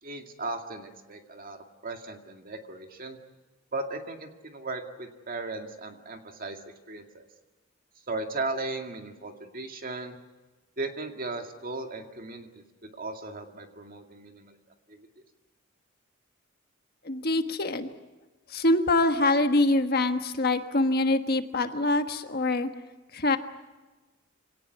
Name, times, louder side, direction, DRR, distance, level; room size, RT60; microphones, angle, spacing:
voice 1, 0.0-3.2 3.7-6.6 6.9-7.3 8.1-10.2 10.8-14.6 14.9-15.1, right 2 dB, 40° right, 5 dB, 2.2 m, -37 dB
voice 2, 17.0-17.9 18.5-22.7 23.1-23.4, left 2 dB, 45° left, 7 dB, 1.4 m, -24 dB
25.5 x 18.0 x 9.5 m, 1.2 s
head